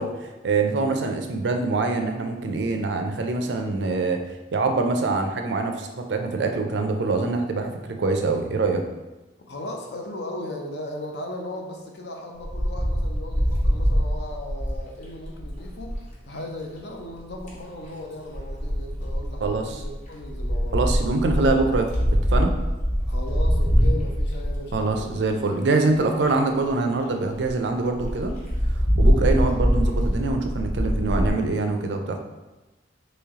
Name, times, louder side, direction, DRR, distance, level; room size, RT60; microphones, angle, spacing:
voice 1, 0.0-4.2 4.5-8.8 19.4-19.8 20.7-22.5 24.7-28.3 29.0-32.2, right 3 dB, 75° right, 5 dB, 0.4 m, -24 dB
voice 2, 9.5-15.9 16.3-20.8 23.1-25.1 25.4-26.1 29.1-29.4, left 1 dB, 70° left, 2 dB, 0.6 m, -37 dB
Wind, 12.4-16.0 17.1-17.6 18.3-25.3 25.9-26.0 26.2-26.3 26.6-26.7 27.0-27.1 27.4-27.5 27.9-31.3, equal, 45° left, 1.0 m, -23 dB
3.1 x 3.1 x 3.6 m, 1.1 s
head